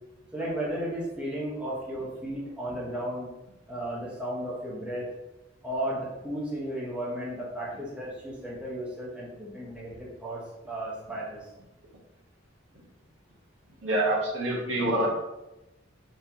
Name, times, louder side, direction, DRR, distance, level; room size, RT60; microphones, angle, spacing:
voice 1, 0.3-3.3 3.7-5.1 5.6-10.4 10.7-11.5, right 1 dB, 5° right, -6 dB, 1.1 m, -34 dB
voice 2, 13.8-15.1, right 1 dB, 90° right, -3 dB, 1.2 m, -26 dB
4.4 x 3.2 x 2.8 m, 0.97 s
head